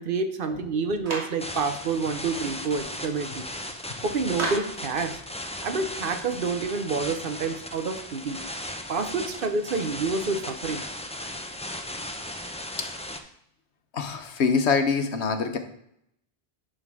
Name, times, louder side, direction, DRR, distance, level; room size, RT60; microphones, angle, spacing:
voice 1, 0.0-3.4 4.0-5.2 5.6-8.4 8.9-10.8, right 4 dB, 60° right, 8 dB, 0.9 m, -28 dB
Clapping, 1.1-1.4 4.4-4.8, right 2 dB, 90° right, 1.8 m, -31 dB
sound 1, 1.4-13.2, left 1 dB, 10° left, 0.4 m, -37 dB
voice 2, 13.9-15.6, left 5 dB, 85° left, 7 dB, 1.2 m, -24 dB
11.0 x 3.8 x 4.7 m, 0.74 s
omnidirectional pair, 1.1 m